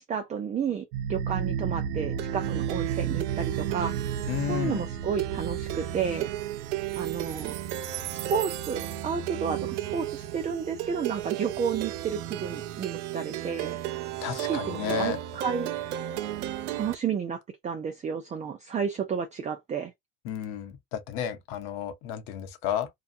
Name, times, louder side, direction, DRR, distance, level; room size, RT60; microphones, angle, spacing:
voice 1, 0.0-4.2 4.5-6.3 7.0-7.5 8.3-13.8 14.3-15.7 16.7-19.9, right 6 dB, 20° right, 0.4 m, -32 dB
Plucked string instrument, 0.9-17.0, right 10 dB, 90° right, 0.6 m, -32 dB
voice 2, 4.3-4.8 14.2-15.2 20.2-22.9, left 8 dB, 65° left, 1.0 m, -32 dB
2.7 x 2.2 x 2.5 m
supercardioid pair, 110°, 44 cm